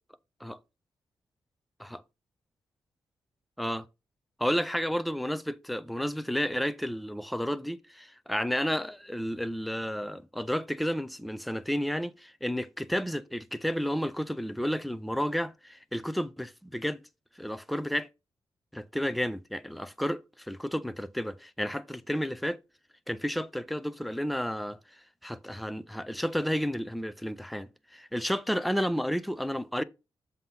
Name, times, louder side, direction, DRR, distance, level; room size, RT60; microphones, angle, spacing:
voice 1, 4.4-17.0 17.4-18.1 18.7-22.6 23.1-29.8, equal, ahead, 0.4 m, -31 dB
7.5 x 2.7 x 5.3 m
wide cardioid pair, 125°, 9 cm